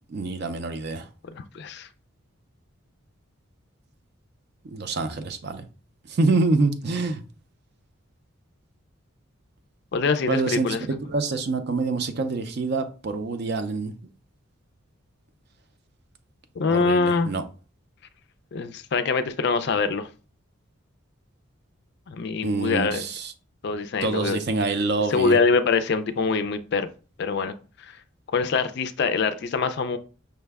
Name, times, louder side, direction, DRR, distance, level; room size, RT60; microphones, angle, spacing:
voice 1, 0.1-1.1 4.6-5.7 6.1-7.2 10.3-10.8 11.1-13.9 16.7-17.4 22.4-23.3 24.0-25.4, right 3 dB, 50° right, 0.4 m, -26 dB
voice 2, 1.3-1.9 9.9-10.8 16.6-17.3 18.5-20.1 22.1-23.0 23.6-24.4 25.1-26.9 27.2-28.0 28.3-30.0, left 4 dB, 50° left, 0.3 m, -24 dB
5.6 x 2.1 x 3.4 m
head